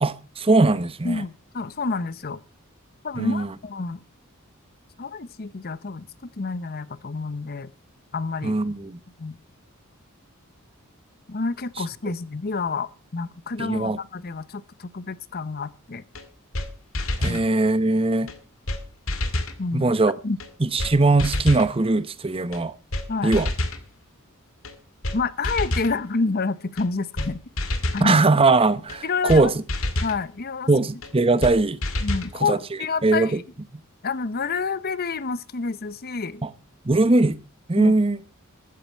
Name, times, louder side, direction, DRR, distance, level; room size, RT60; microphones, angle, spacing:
voice 1, 0.0-1.2 3.2-3.5 8.4-9.0 13.6-14.0 17.2-18.3 19.7-20.1 20.6-22.7 23.2-23.5 28.0-29.5 30.7-31.8 32.5-32.6 33.0-33.4 36.4-36.5 36.8-37.4 37.7-38.2, right 2 dB, 25° right, 0.8 m, -20 dB
voice 2, 1.0-2.4 3.0-4.0 5.0-7.7 8.1-8.6 9.2-9.4 11.3-16.0 17.2-17.4 19.6-19.9 20.2-20.4 23.1-23.3 25.1-27.4 27.9-28.2 29.0-29.5 30.0-30.7 32.0-33.3 34.0-36.4 37.8-38.0, left 4 dB, 45° left, 0.8 m, -28 dB
sound 1, 16.1-16.2 16.5-16.7 16.9-17.4 18.3-18.4 18.7-18.8 19.1-19.6 20.4-20.5 20.8-20.9 21.2-21.7 22.5-22.6 22.9-23.1 23.3-23.8 24.6-24.7 25.0-25.2 25.4-25.9 26.8-26.9 27.2-27.3 27.6-28.1 28.9-29.0 29.3-29.4 29.7-30.2 31.0-31.1 31.4-31.5 31.8-32.3, left 1 dB, 70° left, 2.4 m, -27 dB
14.5 x 13.5 x 4.5 m
head